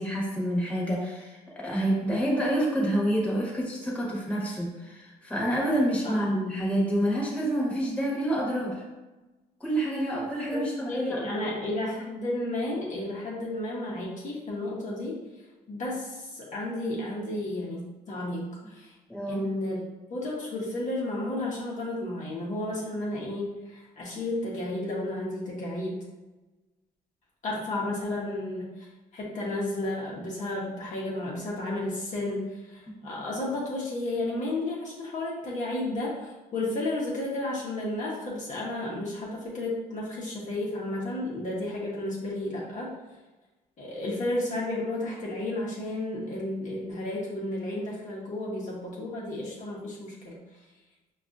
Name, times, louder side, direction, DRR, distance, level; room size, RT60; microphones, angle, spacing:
voice 1, 0.0-8.8 9.6-11.5 19.1-19.5, right 1 dB, 5° left, -5 dB, 1.1 m, -28 dB
voice 2, 10.9-15.2 15.7-19.0 19.3-19.8 20.1-26.0 27.4-42.9 43.8-50.4, left 1 dB, 45° left, -5 dB, 0.9 m, -32 dB
4.9 x 2.3 x 2.5 m, 1.1 s
cardioid pair, 110°, 17 cm